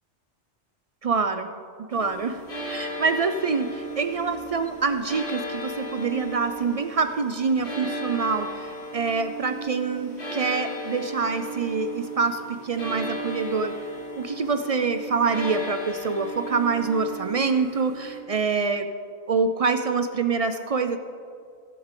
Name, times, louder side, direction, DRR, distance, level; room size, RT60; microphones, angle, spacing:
voice 1, 1.0-1.5 1.9-2.4 2.6-13.8 14.2-18.9 19.3-21.0, right 4 dB, 55° right, 8 dB, 0.4 m, -26 dB
sound 1, 1.9-18.2, right 1 dB, 70° left, 2.8 m, -35 dB
16.5 x 8.0 x 3.7 m, 2.3 s
omnidirectional pair, 1.1 m